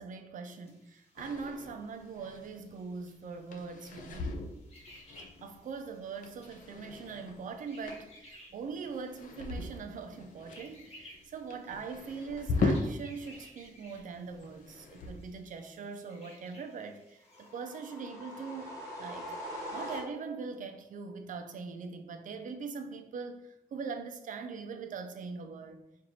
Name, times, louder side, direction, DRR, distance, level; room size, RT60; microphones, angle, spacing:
voice 1, 0.0-4.4 5.4-19.3 19.7-25.8, right 5 dB, 60° right, 7 dB, 0.5 m, -42 dB
sound 1, 0.6-17.9, left 1 dB, 45° left, 1.1 m, -59 dB
sound 2, 1.2-13.5 13.8-15.4, left 3 dB, 65° left, 0.6 m, -39 dB
sound 3, 17.3-20.5, equal, 20° left, 1.1 m, -42 dB
4.5 x 2.5 x 4.2 m, 0.83 s
wide cardioid pair, 180°, 15 cm